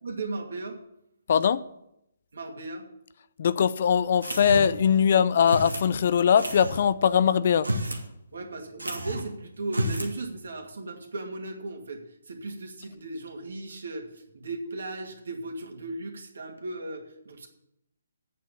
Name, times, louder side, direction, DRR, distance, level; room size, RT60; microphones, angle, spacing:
voice 1, 0.0-0.8 2.3-2.9 8.3-17.5, right 2 dB, 65° right, 2.3 m, -36 dB
voice 2, 1.3-1.6 3.4-7.7, left 7 dB, 50° left, 0.5 m, -21 dB
sound 1, 4.2-4.9 5.5-5.9 6.4-6.8 7.5-8.1 8.3-8.4 8.8-9.3 9.7-10.1, right 1 dB, 90° right, 1.8 m, -31 dB
8.5 x 7.6 x 8.7 m
figure-of-eight pair, 140°, 0 cm